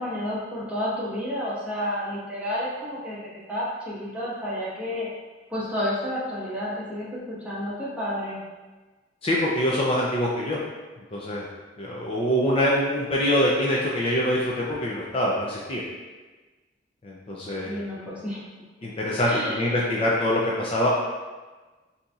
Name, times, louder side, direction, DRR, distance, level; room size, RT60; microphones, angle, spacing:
voice 1, 0.0-5.1 5.5-8.4 17.6-18.4 19.3-19.6, equal, 10° right, -9 dB, 1.2 m, -30 dB
voice 2, 9.2-10.6 11.1-11.5 11.8-15.8 17.0-17.8 18.8-21.0, equal, 30° left, -4 dB, 0.5 m, -24 dB
6.6 x 2.8 x 2.4 m, 1.3 s
head